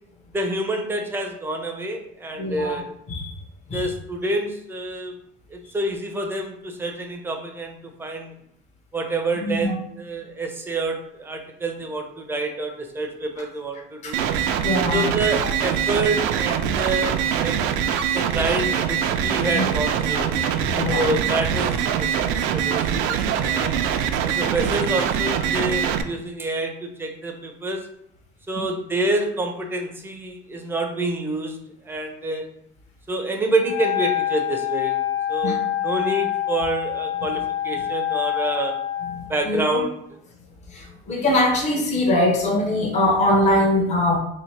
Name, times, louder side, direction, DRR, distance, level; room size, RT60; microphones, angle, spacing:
voice 1, 0.3-2.9 3.7-5.2 5.5-8.3 8.9-14.2 14.9-17.6 18.1-20.3 20.9-23.8 24.4-27.9 28.5-31.6 31.8-32.4 33.1-38.7 39.3-40.0 41.1-41.3, right 2 dB, 10° right, 3 dB, 0.5 m, -27 dB
voice 2, 2.4-2.8 3.1-3.4 3.7-3.9 9.4-9.7 14.0-14.1 14.6-15.0 19.5-19.7 20.7-21.1 35.4-35.6 39.2-39.8 40.7-44.2, left 1 dB, 35° left, 1 dB, 0.9 m, -22 dB
sound 1, 14.1-26.0, right 8 dB, 80° right, 0.5 m, -23 dB
Wind instrument woodwind instrument, 33.6-39.2, left 12 dB, 70° left, 0.9 m, -26 dB
3.2 x 2.8 x 4.5 m, 0.75 s
cardioid pair, 160°, 21 cm